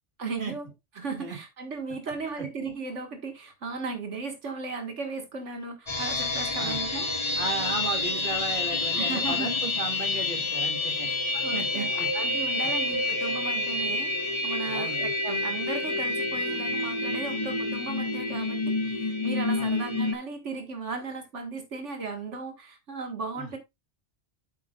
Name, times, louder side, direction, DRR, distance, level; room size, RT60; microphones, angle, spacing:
voice 1, 0.2-0.7 1.0-7.1 8.9-9.6 11.0-23.6, right 4 dB, 85° right, 1.9 m, -36 dB
sound 1, 5.9-20.1, left 2 dB, 25° left, 1.7 m, -28 dB
voice 2, 7.3-11.1 11.5-12.1 14.6-15.1 19.6-19.7 23.4-23.5, right 4 dB, 45° right, 2.3 m, -34 dB
9.0 x 8.1 x 2.3 m
omnidirectional pair, 1.2 m